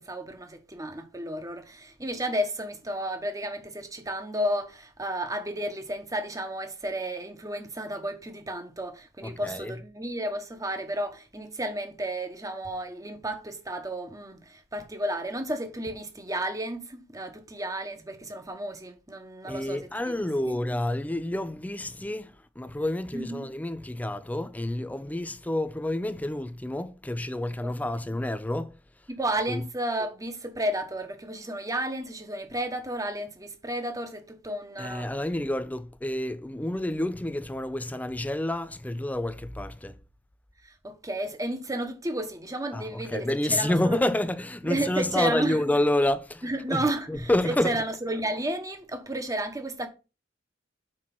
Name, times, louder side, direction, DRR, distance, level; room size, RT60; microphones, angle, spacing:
voice 1, 0.0-20.2 20.5-20.6 23.1-23.5 27.6-27.7 29.1-35.1 40.6-44.0 44.6-45.6 46.4-49.9, right 1 dB, 15° right, 1.1 m, -32 dB
voice 2, 9.2-9.8 19.5-28.8 29.5-29.7 34.8-40.0 42.7-47.8, left 1 dB, 10° left, 0.4 m, -29 dB
6.0 x 4.5 x 5.9 m
head